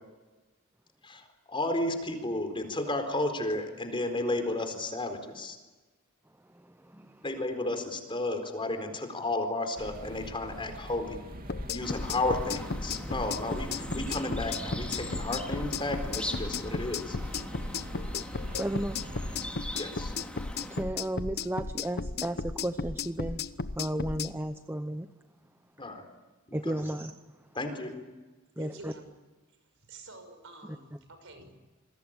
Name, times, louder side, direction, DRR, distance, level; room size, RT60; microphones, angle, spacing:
voice 1, 1.0-5.6 7.2-11.2 11.7-17.2 19.7-20.1 25.8-26.0 26.6-26.8 27.5-28.0, left 2 dB, 25° left, 6 dB, 4.2 m, -33 dB
voice 2, 6.6-7.2 18.6-19.0 20.7-23.4 23.8-25.1 26.5-27.2 28.6-28.9, right 1 dB, 10° right, 9 dB, 0.8 m, -34 dB
sound 1, 9.8-19.5, equal, 45° right, 2.7 m, -43 dB
sound 2, 11.5-24.3, left 4 dB, 50° left, 1.0 m, -34 dB
sound 3, 11.8-20.8, left 1 dB, 5° left, 3.4 m, -41 dB
voice 3, 28.6-29.2 29.8-31.5, right 2 dB, 65° right, 7 dB, 6.3 m, -48 dB
28.0 x 21.5 x 8.9 m, 1.2 s
head